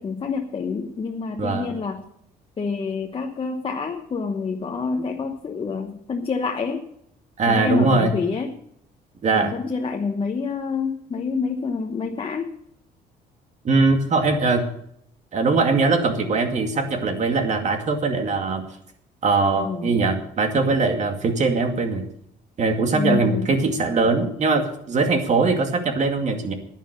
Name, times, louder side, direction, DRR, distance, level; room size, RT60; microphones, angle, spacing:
voice 1, 0.0-2.0 2.6-6.9 7.5-8.5 9.3-12.5 19.6-19.9 22.9-23.5, left 4 dB, 30° left, 2 dB, 1.1 m, -27 dB
voice 2, 1.4-1.7 7.4-8.1 9.2-9.5 13.6-14.7 15.3-18.6 19.2-22.0 22.6-26.5, right 3 dB, 45° right, 5 dB, 2.3 m, -21 dB
11.0 x 9.7 x 6.7 m, 0.70 s
cardioid pair, 110°, 17 cm